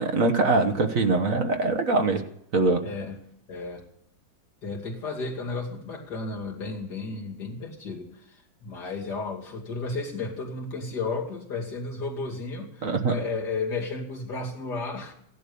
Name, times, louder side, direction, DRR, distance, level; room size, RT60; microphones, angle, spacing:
voice 1, 0.0-2.2 2.5-2.8 12.8-13.1, right 3 dB, 50° right, 6 dB, 1.5 m, -23 dB
voice 2, 2.8-3.2 3.5-3.8 4.6-8.1 8.6-15.1, left 3 dB, 70° left, -1 dB, 3.2 m, -33 dB
16.0 x 11.0 x 6.9 m, 0.72 s
omnidirectional pair, 1.9 m